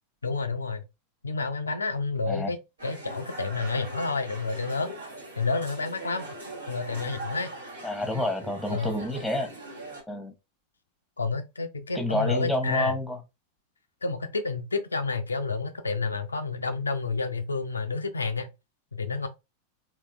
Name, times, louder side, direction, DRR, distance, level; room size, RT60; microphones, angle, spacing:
voice 1, 0.2-0.8 1.2-4.9 5.4-6.3 6.7-7.5 8.7-9.0 11.2-12.9 14.0-18.5 18.9-19.3, left 4 dB, 80° left, 0.4 m, -30 dB
sound 1, 2.8-10.0, right 2 dB, 70° right, 1.1 m, -41 dB
voice 2, 7.8-9.5 10.1-10.3 11.9-13.2, left 1 dB, ahead, 0.9 m, -29 dB
3.6 x 2.7 x 2.3 m
figure-of-eight pair, 90°, 0 cm